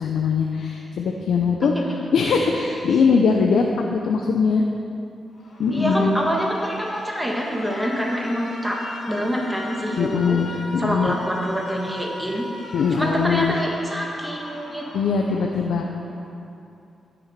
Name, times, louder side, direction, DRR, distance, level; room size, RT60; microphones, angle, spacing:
voice 1, 0.0-1.7 2.1-3.6 3.9-4.6 5.6-6.2 10.0-11.2 12.7-13.5 14.9-15.9, left 5 dB, 90° left, 1 dB, 0.8 m, -21 dB
Alarm, 5.3-16.4, left 1 dB, 55° left, 2.0 m, -39 dB
voice 2, 5.7-10.4 10.8-12.5 12.9-14.9, equal, 5° right, -2 dB, 1.6 m, -26 dB
13.0 x 7.9 x 6.1 m, 2.6 s
wide cardioid pair, 120°, 0 cm